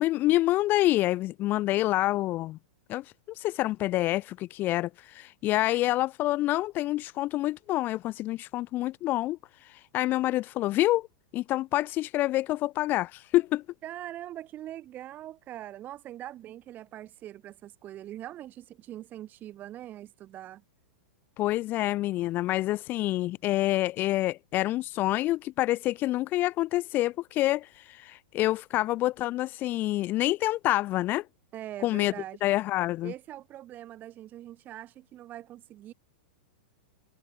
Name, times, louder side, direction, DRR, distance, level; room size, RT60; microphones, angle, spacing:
voice 1, 0.0-2.6 2.9-3.0 3.4-11.1 11.3-13.6 21.4-31.3 31.8-32.1 32.4-33.1, left 16 dB, 35° left, 0.6 m, -27 dB
voice 2, 13.8-20.6 31.5-32.4 33.0-35.9, right 13 dB, 35° right, 3.9 m, -42 dB
hypercardioid pair, 120°, 6 cm